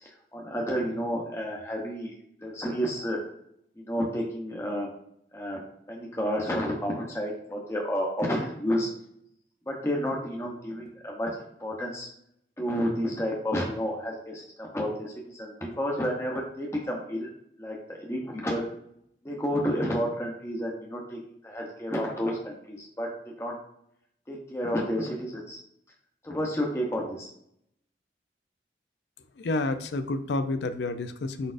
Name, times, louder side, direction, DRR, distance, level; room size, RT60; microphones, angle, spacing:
voice 1, 0.0-2.1 2.4-3.2 3.8-4.9 5.3-8.9 9.7-11.3 11.6-12.1 12.6-17.3 17.6-18.7 19.2-23.1 23.4-23.5 24.3-25.6 26.2-27.3, equal, 15° left, -1 dB, 0.7 m, -31 dB
voice 2, 29.4-31.5, left 2 dB, 70° left, 10 dB, 0.4 m, -29 dB
4.7 x 4.2 x 2.5 m, 0.73 s
head